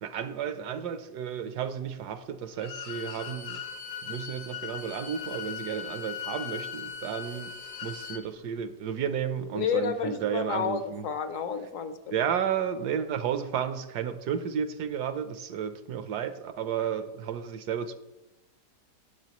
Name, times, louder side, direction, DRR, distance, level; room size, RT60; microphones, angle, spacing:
voice 1, 0.0-3.6 4.0-7.5 7.8-11.1 12.1-17.9, right 8 dB, 75° right, 11 dB, 1.2 m, -32 dB
Bowed string instrument, 2.5-8.2, left 7 dB, 80° left, 1.5 m, -39 dB
voice 2, 9.5-12.1, left 7 dB, 60° left, 10 dB, 1.0 m, -30 dB
17.5 x 6.3 x 3.0 m, 0.98 s
omnidirectional pair, 1.8 m